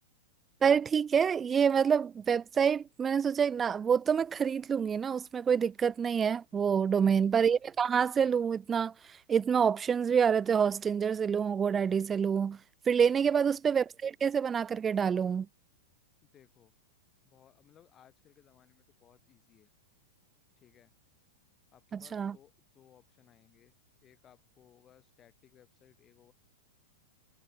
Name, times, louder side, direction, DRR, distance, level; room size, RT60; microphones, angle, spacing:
voice 1, 0.6-8.9 9.3-12.6 12.9-15.5 22.1-22.3, right 7 dB, 20° right, 0.4 m, -27 dB
voice 2, 6.8-7.3 13.3-13.5 16.2-16.7 17.2-19.7 20.6-20.9 21.7-23.7 24.0-26.3, left 10 dB, 25° left, 6.6 m, -62 dB
figure-of-eight pair, 100°, 0 cm